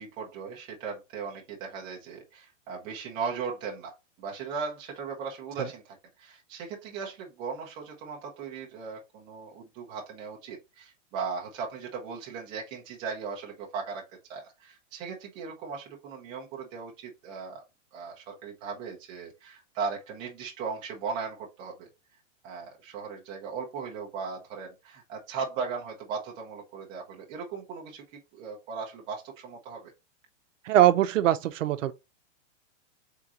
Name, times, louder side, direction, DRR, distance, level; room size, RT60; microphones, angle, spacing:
voice 1, 0.0-14.0 14.3-17.6 17.9-21.9 22.4-28.0 28.3-29.9, right 5 dB, 15° right, 0.5 m, -37 dB
voice 2, 30.7-31.9, right 12 dB, 75° right, 0.6 m, -22 dB
3.7 x 3.7 x 2.8 m
supercardioid pair, 170°, 38 cm